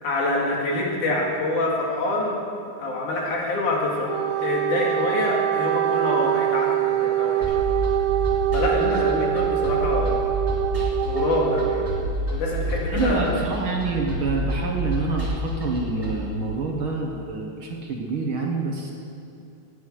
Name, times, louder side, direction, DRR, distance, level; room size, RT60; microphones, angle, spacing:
voice 1, 0.0-2.4 2.8-7.6 8.5-10.2 11.0-11.9 12.3-13.4, left 2 dB, 90° left, -2 dB, 4.0 m, -26 dB
Wind instrument woodwind instrument, 4.0-12.0, right 13 dB, 75° right, 2.0 m, -24 dB
sound 1, 7.4-16.3, equal, 25° right, 3.6 m, -29 dB
voice 2, 12.9-18.9, right 3 dB, 50° right, 0 dB, 2.0 m, -27 dB
19.0 x 9.7 x 6.4 m, 2.5 s
omnidirectional pair, 3.4 m